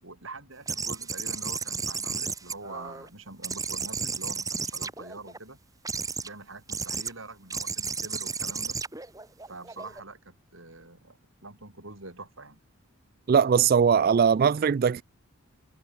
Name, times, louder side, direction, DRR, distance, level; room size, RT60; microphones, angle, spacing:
voice 1, 0.0-5.6 6.2-8.8 9.5-12.6, right 3 dB, 70° right, 5.2 m, -44 dB
sound 1, 0.7-3.1 3.4-5.4 5.8-6.3 6.7-7.1 7.5-10.0, right 5 dB, 15° right, 2.0 m, -33 dB
voice 2, 13.3-15.0, right 7 dB, 45° right, 0.3 m, -20 dB
head